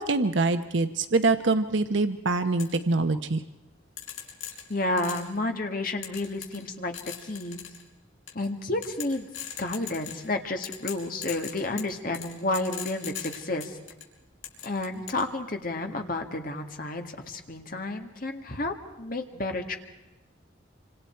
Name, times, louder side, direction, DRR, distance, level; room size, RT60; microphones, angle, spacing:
voice 1, 0.0-3.4, right 3 dB, 70° right, 9 dB, 0.9 m, -24 dB
sound 1, 2.6-2.7 4.0-5.4 6.0-6.7 6.9-7.8 8.3-8.5 8.8-10.3 10.6-14.0 14.4-15.2, left 10 dB, 85° left, 5.4 m, -38 dB
voice 2, 4.7-7.6 8.3-9.3 9.6-13.8 14.6-19.8, left 2 dB, 45° left, 5 dB, 2.0 m, -31 dB
27.0 x 26.0 x 4.6 m, 1.0 s
head